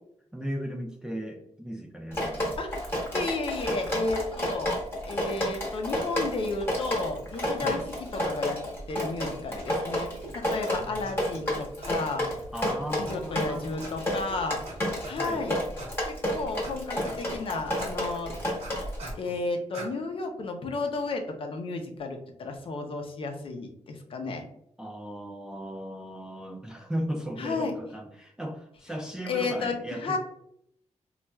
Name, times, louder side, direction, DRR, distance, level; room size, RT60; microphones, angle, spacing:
voice 1, 0.3-2.6 7.6-7.9 10.8-11.2 12.5-13.8 15.2-15.5 24.8-30.2, equal, 5° right, 2 dB, 0.3 m, -36 dB
Drip, 2.1-19.1, equal, 20° left, 1.1 m, -30 dB
voice 2, 3.1-4.8 5.0-7.8 8.1-8.6 8.9-12.3 12.9-14.6 15.0-15.6 16.1-18.3 19.1-24.4 27.4-27.7 29.3-30.2, left 3 dB, 50° left, 4 dB, 0.5 m, -32 dB
sound 1, 10.2-10.3 10.6-10.7 11.1-11.4 11.8-11.9 12.3-12.4 12.7-12.8 13.1-13.4 13.8-13.9 14.3-14.4 14.7-14.8 15.0-15.4 15.8-15.9 16.3-16.7 17.0-17.4 17.8-17.9 18.3-19.4 19.7-19.9, right 2 dB, 55° right, 1.1 m, -42 dB
4.1 x 2.3 x 2.2 m, 0.71 s
wide cardioid pair, 175°, 12 cm